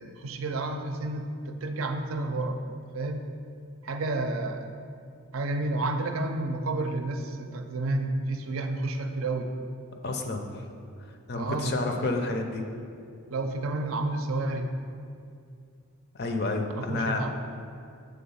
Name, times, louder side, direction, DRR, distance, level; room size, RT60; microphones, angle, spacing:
voice 1, 0.0-3.3 3.8-4.7 5.3-9.5 11.3-12.0 13.3-14.7 16.8-17.3, right 2 dB, 70° right, 6 dB, 0.5 m, -30 dB
voice 2, 10.0-10.6 11.3-12.6 16.1-17.3, left 2 dB, 50° left, 4 dB, 0.5 m, -30 dB
6.8 x 3.5 x 5.5 m, 2.4 s
head